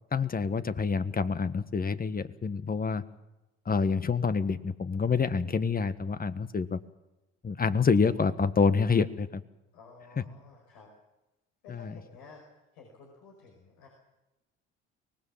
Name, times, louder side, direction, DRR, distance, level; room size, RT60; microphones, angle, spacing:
voice 1, 0.1-3.0 3.6-6.8 7.4-9.4 11.7-11.9, left 5 dB, 30° left, 13 dB, 1.5 m, -27 dB
voice 2, 9.7-10.9 11.6-12.4 12.7-13.9, left 5 dB, 85° left, 0 dB, 5.3 m, -52 dB
24.0 x 19.5 x 7.4 m, 1.0 s
supercardioid pair, 65°, 29 cm